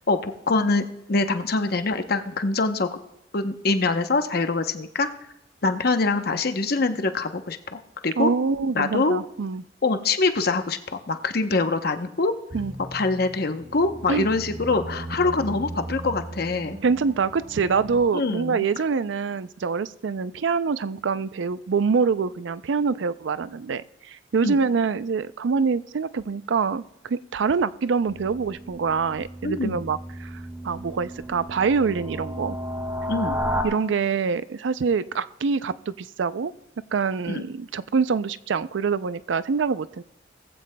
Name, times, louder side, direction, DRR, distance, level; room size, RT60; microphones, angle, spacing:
voice 1, 0.1-2.9 3.3-5.1 5.6-8.3 8.7-9.2 9.8-12.3 12.9-16.8 18.1-18.7 24.4-24.6 29.4-29.8 33.1-33.4 37.3-37.4, left 3 dB, 55° left, 8 dB, 0.8 m, -24 dB
voice 2, 8.2-9.6 12.5-12.7 14.1-14.3 16.8-30.3 30.6-32.6 33.6-36.5 36.9-40.0, right 5 dB, 75° right, 15 dB, 0.4 m, -25 dB
sound 1, 12.5-18.0, right 1 dB, 45° right, 1.1 m, -38 dB
sound 2, 28.1-33.6, equal, 10° right, 1.5 m, -33 dB
20.0 x 15.0 x 2.2 m, 0.88 s
head